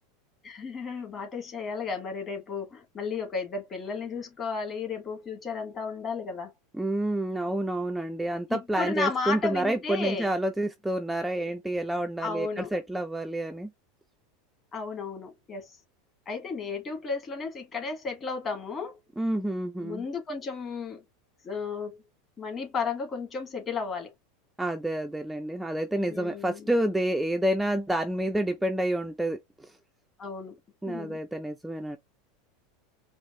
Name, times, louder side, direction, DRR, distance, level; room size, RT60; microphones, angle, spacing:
voice 1, 0.4-6.5 8.5-10.3 12.2-12.7 14.7-15.7 16.3-19.0 19.8-21.0 21.4-22.0 22.4-24.1 25.9-26.7 30.2-30.6 30.9-31.2, left 5 dB, 30° left, 1.5 m, -34 dB
voice 2, 6.7-13.7 19.2-20.0 24.6-29.7 30.8-32.0, right 1 dB, 5° right, 0.4 m, -29 dB
4.4 x 2.0 x 2.9 m
supercardioid pair, 115°, 0 cm